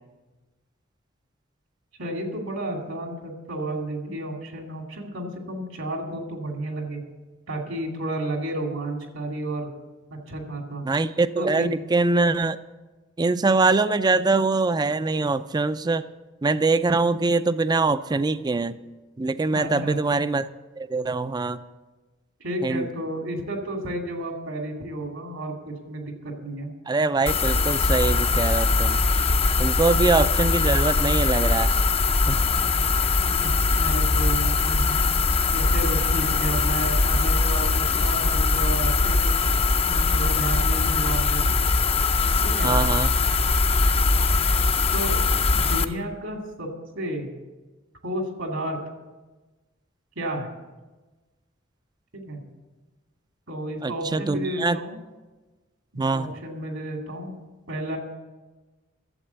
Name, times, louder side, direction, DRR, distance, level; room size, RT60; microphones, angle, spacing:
voice 1, 2.0-7.0 7.5-9.7 10.1-10.9 11.4-11.7 19.5-20.0 22.4-26.7 33.3-34.9 35.5-39.3 39.8-41.5 42.4-42.7 44.9-45.2 45.5-47.3 48.0-48.8 50.2-50.5 52.1-52.4 53.5-55.0 55.9-57.4 57.7-58.0, right 1 dB, 80° right, 2 dB, 2.6 m, -32 dB
voice 2, 10.8-12.6 13.2-16.1 16.4-18.8 19.2-20.5 20.8-21.6 22.6-22.9 26.9-29.0 29.6-31.7 32.3-32.4 42.6-43.2 53.8-54.8 56.0-56.3, right 3 dB, 20° right, 13 dB, 0.4 m, -23 dB
sound 1, 27.3-45.8, left 3 dB, 30° left, 0.5 m, -21 dB
12.0 x 7.8 x 8.1 m, 1.2 s
head